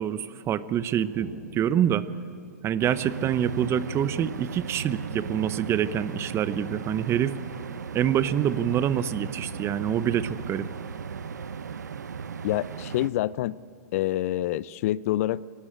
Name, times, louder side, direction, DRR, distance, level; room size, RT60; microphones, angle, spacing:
voice 1, 0.0-2.0 2.6-7.4 7.9-10.7, right 9 dB, 30° right, 15 dB, 0.9 m, -26 dB
sound 1, 0.8-9.2, right 2 dB, 70° right, 4.5 m, -52 dB
sound 2, 2.8-13.1, right 6 dB, 85° right, 0.8 m, -36 dB
voice 2, 12.4-13.6 13.9-15.4, left 14 dB, 55° left, 20 dB, 0.5 m, -27 dB
24.0 x 18.5 x 8.9 m, 2.1 s
hypercardioid pair, 115°, 9 cm